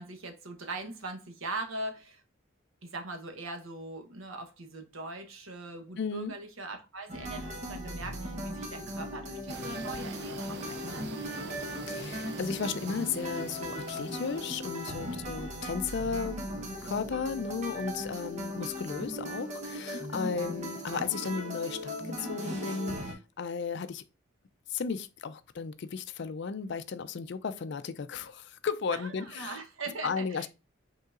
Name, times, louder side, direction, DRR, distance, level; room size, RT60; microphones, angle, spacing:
voice 1, 0.0-2.2 2.8-11.6 15.0-15.2 19.9-20.1 28.9-30.5, right 2 dB, 85° right, 1.0 m, -41 dB
voice 2, 6.0-6.3 11.9-24.0 24.7-29.6 30.0-30.5, left 5 dB, 55° left, 0.4 m, -35 dB
sound 1, 7.1-23.1, equal, 35° right, 0.9 m, -38 dB
sound 2, 9.5-15.2, right 4 dB, 55° right, 0.5 m, -44 dB
5.5 x 3.7 x 2.4 m
head